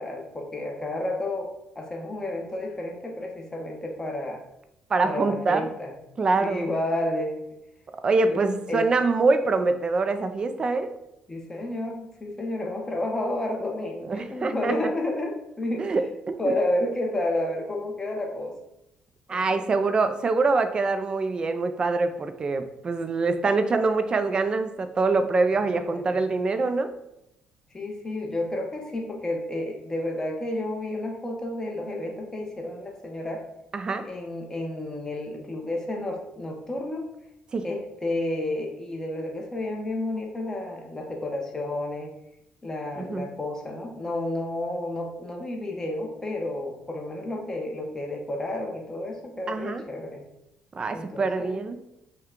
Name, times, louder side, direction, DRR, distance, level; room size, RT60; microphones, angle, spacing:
voice 1, 0.0-1.5 1.7-4.4 5.0-5.9 6.4-7.3 8.3-8.4 8.7-8.9 11.3-15.9 16.4-18.5 19.3-19.9 25.7-26.2 27.7-33.4 34.0-37.0 37.6-42.1 42.6-50.2 50.9-51.6, left 1 dB, 15° left, 1 dB, 0.9 m, -31 dB
voice 2, 4.9-5.6 6.2-6.7 8.0-10.9 14.0-14.7 15.8-16.5 19.3-26.9 33.7-34.1 37.5-37.7 43.0-43.2 49.5-49.8 50.7-51.8, right 3 dB, 30° right, 9 dB, 0.4 m, -24 dB
5.7 x 2.3 x 3.7 m, 0.83 s
cardioid pair, 135°, 3 cm